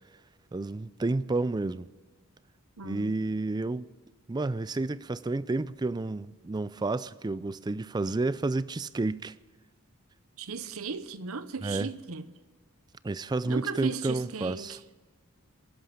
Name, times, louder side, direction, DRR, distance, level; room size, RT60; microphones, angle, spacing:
voice 1, 0.5-1.9 2.8-3.9 4.3-9.3 11.6-11.9 13.0-14.8, right 2 dB, 20° right, 0.3 m, -30 dB
voice 2, 2.8-3.1 10.4-12.2 13.5-14.8, right 4 dB, 75° right, 0.9 m, -36 dB
24.0 x 11.0 x 5.0 m
head